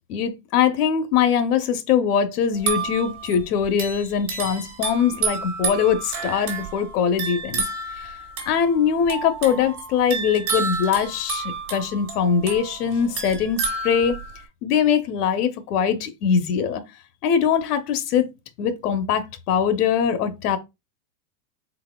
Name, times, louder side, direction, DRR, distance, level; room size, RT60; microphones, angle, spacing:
voice 1, 0.1-7.6 7.9-8.1 8.5-14.2 14.6-16.8 17.2-18.3 18.6-20.6, left 7 dB, 65° left, 0.7 m, -22 dB
sound 1, 2.5-14.4, right 4 dB, 25° right, 1.2 m, -30 dB
4.0 x 4.0 x 2.2 m
supercardioid pair, 175°, 50 cm